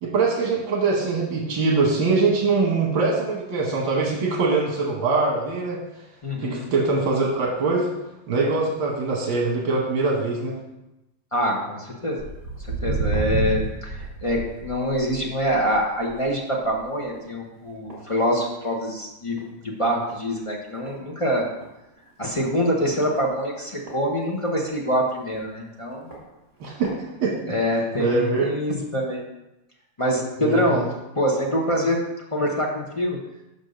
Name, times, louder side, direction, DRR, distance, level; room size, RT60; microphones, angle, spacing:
voice 1, 0.0-5.8 6.4-7.9 8.3-10.6 26.6-27.0 27.2-27.4 28.0-28.4 30.4-30.9, right 3 dB, 85° right, -2 dB, 1.9 m, -23 dB
voice 2, 6.2-6.7 11.3-12.3 12.8-21.5 22.2-26.1 27.4-29.2 30.0-30.8 31.1-32.0 32.3-33.2, equal, 30° left, -2 dB, 0.6 m, -25 dB
Walk footsteps, 12.2-18.9 19.2-19.5 20.1-20.2 20.9-21.0 21.3-21.4 21.6-21.7 22.3-22.5 23.1-24.7 25.3-25.4 26.1-26.2 26.6-26.9 27.6-27.7, right 3 dB, 40° right, 3.2 m, -31 dB
5.4 x 5.4 x 6.5 m, 0.94 s
omnidirectional pair, 2.1 m